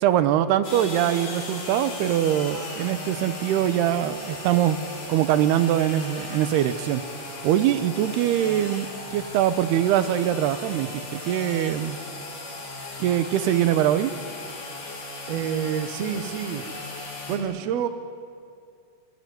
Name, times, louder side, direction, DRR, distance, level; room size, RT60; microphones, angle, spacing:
voice 1, 0.0-4.8 5.1-7.0 7.4-12.0 13.0-14.1, right 11 dB, 85° right, 12 dB, 2.9 m, -23 dB
Chainsaw - Start Cut and Idle, 0.6-17.4, left 3 dB, 50° left, 5.5 m, -36 dB
voice 2, 15.3-16.6 17.3-17.9, right 8 dB, 65° right, 9 dB, 1.7 m, -28 dB
26.5 x 23.0 x 9.4 m, 2.3 s
omnidirectional pair, 4.6 m